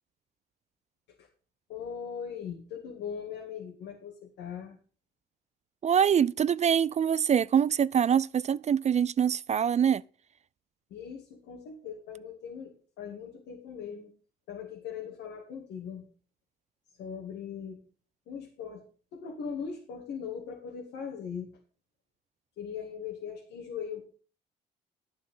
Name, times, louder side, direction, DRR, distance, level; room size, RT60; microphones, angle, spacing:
voice 1, 1.7-4.8 10.9-14.1 14.5-16.0 17.0-17.8 18.3-18.8 19.1-21.5 22.6-24.1, left 7 dB, 75° left, 2.3 m, -40 dB
voice 2, 5.8-10.0, right 8 dB, 40° right, 0.4 m, -24 dB
11.5 x 7.5 x 5.6 m
supercardioid pair, 60°, 18 cm